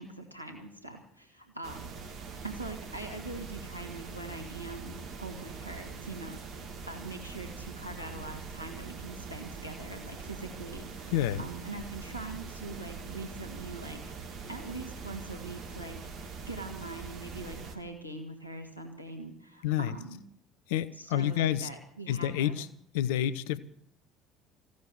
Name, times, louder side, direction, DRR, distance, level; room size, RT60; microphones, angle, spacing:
voice 1, 0.0-1.9 2.3-6.4 6.9-14.0 14.5-16.0 16.2-20.2 20.9-22.6, right 2 dB, 90° left, 4 dB, 1.8 m, -43 dB
sound 1, 1.6-17.8, right 5 dB, 50° right, 2.1 m, -43 dB
voice 2, 11.1-11.4 19.6-19.9 20.7-21.7 22.1-22.7 22.9-23.6, left 11 dB, 65° left, 15 dB, 0.8 m, -28 dB
16.0 x 11.5 x 7.2 m, 0.64 s
figure-of-eight pair, 60°, 0 cm